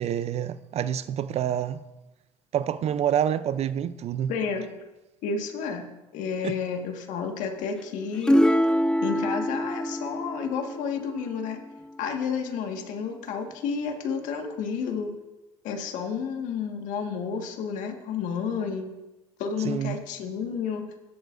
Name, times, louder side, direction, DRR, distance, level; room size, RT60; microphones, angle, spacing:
voice 1, 0.0-1.8 2.5-4.3 6.4-6.5 19.6-20.0, right 9 dB, 50° right, 0.6 m, -27 dB
voice 2, 4.3-4.7 5.2-5.8 6.1-8.4 9.0-11.6 12.0-15.1 15.6-18.9 19.4-20.8, left 6 dB, 65° left, 1.7 m, -31 dB
sound 1, 8.3-11.9 14.4-14.9, equal, 5° left, 0.6 m, -26 dB
17.5 x 8.0 x 2.6 m
hypercardioid pair, 70°, 14 cm